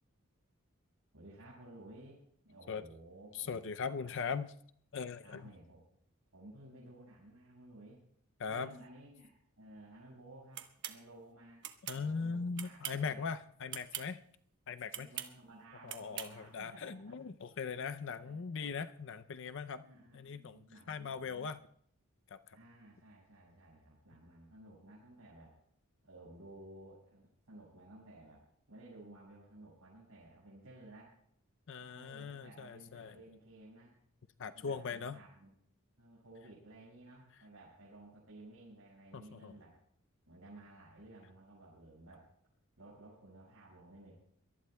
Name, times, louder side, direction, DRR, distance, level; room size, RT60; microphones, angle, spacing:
voice 1, 1.1-3.8 4.0-4.2 5.2-5.8 6.3-8.0 8.5-11.6 11.9-13.3 14.9-17.2 18.2-18.8 19.8-21.5 22.5-25.5 26.0-28.4 28.7-31.2 31.8-33.9 34.5-35.5 36.0-39.8 40.3-42.3 42.8-44.1, right 1 dB, 75° right, -6 dB, 5.6 m, -55 dB
voice 2, 3.3-4.5 4.9-5.5 8.4-8.7 11.9-14.2 14.7-15.1 15.8-19.8 20.1-21.6 22.3-22.6 31.7-33.2 34.4-35.2 39.1-39.5, left 5 dB, 60° left, 10 dB, 0.5 m, -40 dB
sound 1, 10.6-11.0 11.6-12.0 12.6-13.1 13.7-14.1 14.9-15.3 15.9-16.3, right 11 dB, 55° right, 1.1 m, -42 dB
23.5 x 18.5 x 2.2 m, 0.67 s
head